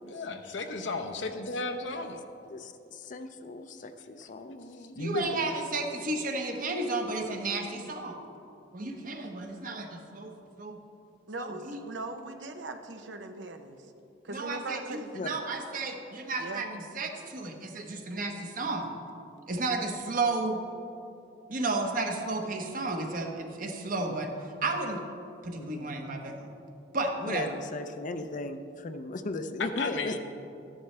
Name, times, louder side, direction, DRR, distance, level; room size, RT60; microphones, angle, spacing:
voice 1, 0.0-2.2 5.0-5.3 29.8-30.2, left 3 dB, 85° left, 6 dB, 0.8 m, -34 dB
voice 2, 2.5-5.6 15.1-15.3 25.6-26.1 27.2-30.2, left 2 dB, 45° left, 9 dB, 0.5 m, -38 dB
voice 3, 4.9-8.2 8.7-10.3 10.6-10.8 11.4-11.8 14.3-18.9 19.5-20.6 21.5-24.3 24.6-25.0 25.4-26.5 26.9-27.4, right 3 dB, 50° right, 3 dB, 1.0 m, -32 dB
voice 4, 11.3-13.9 14.2-15.1 16.4-16.7, right 2 dB, 75° right, 7 dB, 0.8 m, -39 dB
13.0 x 10.0 x 3.3 m, 2.8 s
head